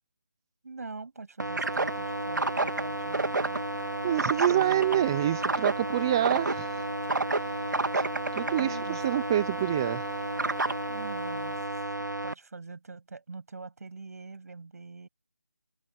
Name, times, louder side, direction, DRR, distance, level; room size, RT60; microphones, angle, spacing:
voice 1, 0.6-3.6 4.5-5.2 8.6-9.0 10.9-11.6 12.2-15.1, right 4 dB, 55° right, 8.0 m, -43 dB
sound 1, 1.4-12.3, right 2 dB, 80° right, 1.8 m, -30 dB
Engine, 1.7-11.6, left 4 dB, 50° left, 6.9 m, -44 dB
voice 2, 4.0-6.9 7.3-8.1 8.3-10.3, right 12 dB, 15° right, 0.6 m, -28 dB
figure-of-eight pair, 170°, 10 cm